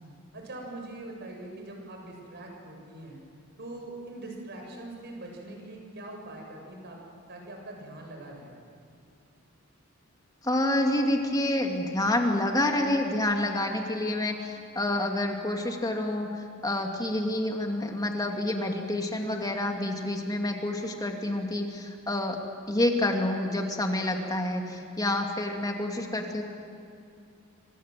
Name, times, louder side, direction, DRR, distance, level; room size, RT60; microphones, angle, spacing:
voice 1, 0.3-3.2 3.6-7.0 7.3-8.6, right 2 dB, 55° right, 1 dB, 6.9 m, -42 dB
voice 2, 10.4-16.3 16.6-22.4 22.7-26.4, left 1 dB, 20° left, 2 dB, 2.7 m, -28 dB
27.0 x 26.0 x 7.8 m, 2.5 s
head